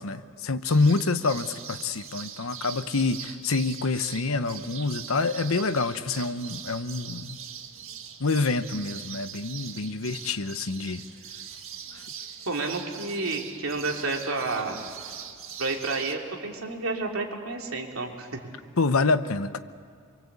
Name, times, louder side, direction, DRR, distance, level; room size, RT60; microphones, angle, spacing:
voice 1, 0.0-7.4 8.2-11.0 18.8-19.6, left 3 dB, 85° left, 11 dB, 1.0 m, -27 dB
sound 1, 0.6-16.1, right 8 dB, 70° right, 1.9 m, -42 dB
voice 2, 12.5-14.8 15.6-18.3, right 3 dB, 85° right, 1 dB, 3.2 m, -30 dB
27.0 x 23.5 x 8.3 m, 2.1 s
head